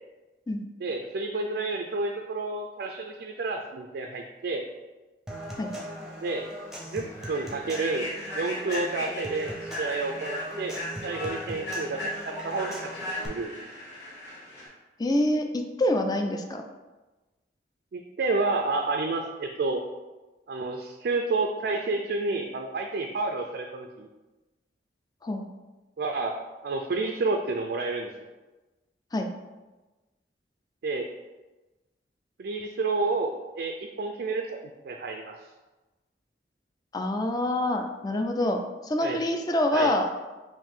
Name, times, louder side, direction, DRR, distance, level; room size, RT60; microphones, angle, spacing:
voice 1, 0.8-4.7 6.2-6.5 6.8-8.1 8.3-10.8 11.0-12.9 13.2-13.7 17.9-19.8 20.5-24.1 26.0-28.3 30.8-31.1 32.4-35.4 39.0-39.3 39.7-39.9, right 3 dB, 60° right, 3 dB, 0.4 m, -30 dB
Human voice / Acoustic guitar / Percussion, 5.3-13.3, right 1 dB, ahead, 0.7 m, -40 dB
Human voice / Train, 5.8-5.9 6.4-6.6 7.1-14.7, left 1 dB, 75° left, 1.4 m, -37 dB
voice 2, 15.0-16.6 25.2-25.4 29.1-29.3 36.9-40.1, left 1 dB, 25° left, 5 dB, 0.4 m, -26 dB
5.4 x 2.6 x 3.6 m, 1.2 s
head